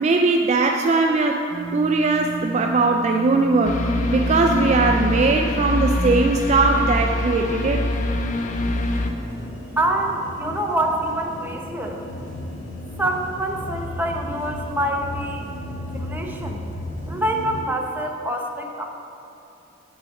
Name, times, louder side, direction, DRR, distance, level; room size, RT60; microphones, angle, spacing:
voice 1, 0.0-1.4 1.7-3.8 4.1-7.8, right 3 dB, 35° right, 3 dB, 0.3 m, -19 dB
sound 1, 1.5-17.6, equal, 65° left, 1.7 m, -34 dB
sound 2, 3.6-9.1, left 1 dB, 40° left, 0.5 m, -24 dB
voice 2, 9.8-12.0 13.0-15.5 15.9-16.6 17.1-18.9, right 1 dB, 10° right, 1 dB, 0.7 m, -26 dB
8.4 x 4.8 x 7.0 m, 2.7 s
head